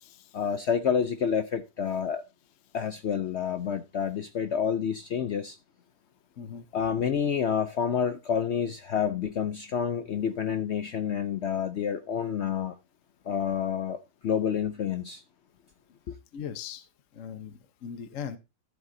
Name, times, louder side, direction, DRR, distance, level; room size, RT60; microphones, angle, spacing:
voice 1, 0.3-2.2 2.7-5.6 6.7-12.8 13.3-15.2 16.1-16.2, left 7 dB, 75° left, 0.6 m, -29 dB
voice 2, 16.3-16.8 17.1-18.4, left 8 dB, 55° left, 1.1 m, -39 dB
13.5 x 8.1 x 2.7 m
omnidirectional pair, 1.9 m